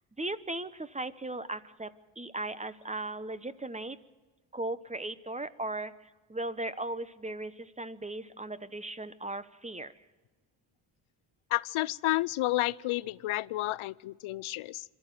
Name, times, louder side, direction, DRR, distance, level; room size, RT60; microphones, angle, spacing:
voice 1, 0.2-4.0 4.5-9.9, right 2 dB, 15° right, 15 dB, 1.0 m, -37 dB
voice 2, 11.5-14.8, left 17 dB, 85° left, 20 dB, 0.6 m, -31 dB
22.5 x 14.0 x 9.2 m, 1.3 s
cardioid pair, 70°, 48 cm